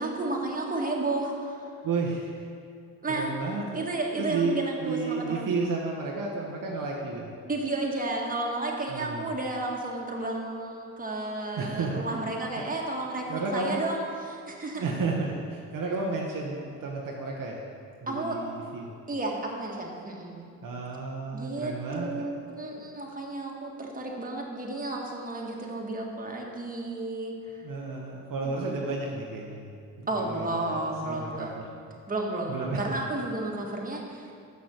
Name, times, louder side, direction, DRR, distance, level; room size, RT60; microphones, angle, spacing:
voice 1, 0.0-1.6 3.0-3.3 3.7-5.4 7.4-14.8 18.1-18.4 19.1-20.5 21.3-27.6 28.4-28.6 30.1-31.6 32.1-34.3, right 2 dB, 20° right, -1 dB, 1.7 m, -32 dB
voice 2, 1.8-2.5 3.1-3.9 4.2-7.4 8.9-9.3 11.6-12.0 12.6-12.7 13.3-13.9 14.7-17.6 18.0-18.9 20.6-22.3 27.6-29.7 30.0-31.6 32.5-32.8, right 3 dB, 60° right, -1 dB, 1.0 m, -32 dB
6.3 x 5.5 x 6.5 m, 2.3 s
hypercardioid pair, 55°, 38 cm